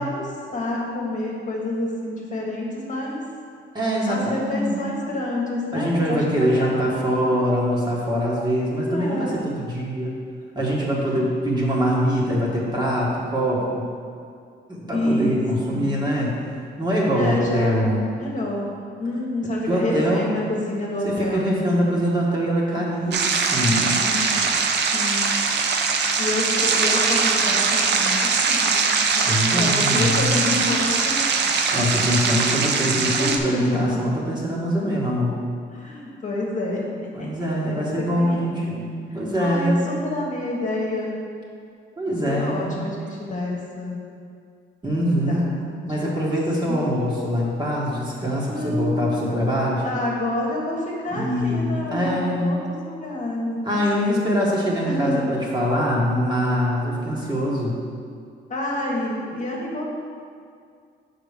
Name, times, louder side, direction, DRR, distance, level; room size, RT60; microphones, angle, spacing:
voice 1, 0.0-3.2 4.0-7.3 8.9-9.4 14.9-15.4 15.7-15.9 17.1-18.7 19.0-21.5 24.0-25.4 26.2-28.9 29.1-31.3 31.8-31.9 32.4-32.9 33.1-34.0 35.7-37.3 37.6-37.8 38.1-38.6 39.4-41.1 42.3-44.0 45.0-45.5 46.0-46.2 46.7-46.8 48.4-49.4 49.8-53.6 54.1-54.3 54.8-55.3 58.5-59.9, left 1 dB, 40° left, -3 dB, 1.5 m, -28 dB
voice 2, 3.7-4.8 5.7-10.1 10.5-13.8 14.7-16.3 16.8-18.1 19.7-20.4 21.0-24.1 29.3-30.3 31.7-35.3 37.1-39.9 42.0-42.7 44.8-45.4 45.8-49.8 51.1-52.6 53.6-57.8, equal, 20° right, -5 dB, 1.7 m, -23 dB
sound 1, 23.1-33.4, right 5 dB, 60° right, 0.7 m, -21 dB
6.0 x 5.0 x 5.1 m, 2.2 s
cardioid pair, 90°, 20 cm